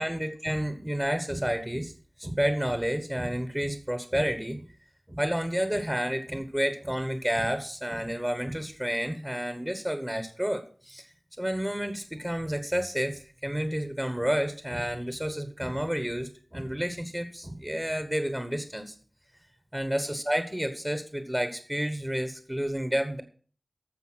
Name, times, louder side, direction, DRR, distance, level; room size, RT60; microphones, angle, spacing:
voice 1, 0.0-1.9 2.2-4.7 5.1-11.1 11.4-18.9 19.7-23.2, equal, 15° right, 9 dB, 1.2 m, -30 dB
12.0 x 7.0 x 6.2 m, 0.43 s
wide cardioid pair, 80°, 0 cm